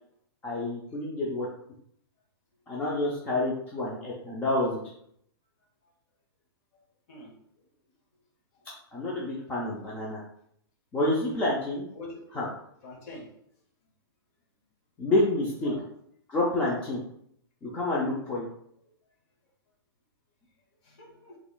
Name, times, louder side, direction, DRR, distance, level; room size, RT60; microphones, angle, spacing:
voice 1, 0.4-1.5 2.7-4.8 8.9-10.2 10.9-11.8 12.3-12.5 15.0-15.7 16.3-17.0 17.6-18.5, left 2 dB, 10° left, -5 dB, 0.4 m, -28 dB
voice 2, 11.9-12.2 12.8-13.3 15.4-15.8 20.8-21.4, left 2 dB, 35° left, 0 dB, 0.8 m, -44 dB
3.0 x 2.3 x 3.7 m, 0.70 s
hypercardioid pair, 160°, 13 cm